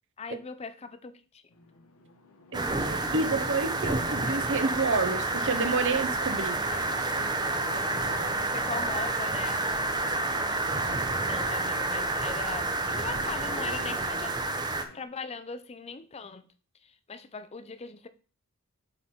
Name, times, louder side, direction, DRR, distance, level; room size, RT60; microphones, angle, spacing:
voice 1, 0.2-1.4 8.5-9.7 10.9-14.4 14.9-16.5 16.8-18.1, left 4 dB, 30° left, 0.5 m, -40 dB
sound 1, 1.5-15.0, left 3 dB, 75° left, 0.9 m, -46 dB
sound 2, 2.5-14.8, right 2 dB, 20° right, 0.7 m, -29 dB
voice 2, 2.5-6.6, right 4 dB, 60° right, 0.8 m, -29 dB
7.8 x 3.9 x 4.3 m
head